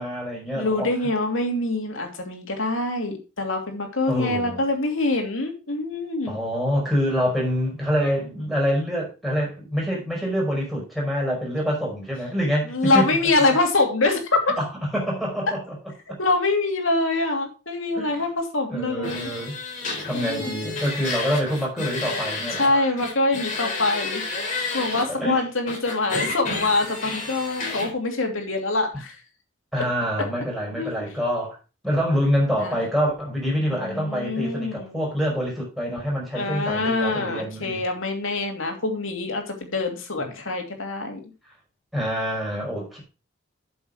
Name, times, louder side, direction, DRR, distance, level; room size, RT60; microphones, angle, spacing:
voice 1, 0.0-0.9 4.1-4.6 6.3-13.1 14.6-15.8 17.9-18.2 18.7-19.6 20.1-22.9 24.9-25.4 29.7-31.6 31.8-37.8 40.2-40.3 41.9-43.0, equal, ahead, 5.1 m, -26 dB
voice 2, 0.5-6.4 12.7-14.5 16.2-19.3 20.1-20.7 22.6-24.2 24.7-29.2 30.8-30.9 32.6-32.8 33.7-35.0 36.3-41.2, left 2 dB, 90° left, 2.7 m, -25 dB
sound 1, 19.0-22.7 23.0-25.0 25.7-27.9, left 3 dB, 40° left, 3.6 m, -30 dB
8.4 x 7.0 x 4.9 m
head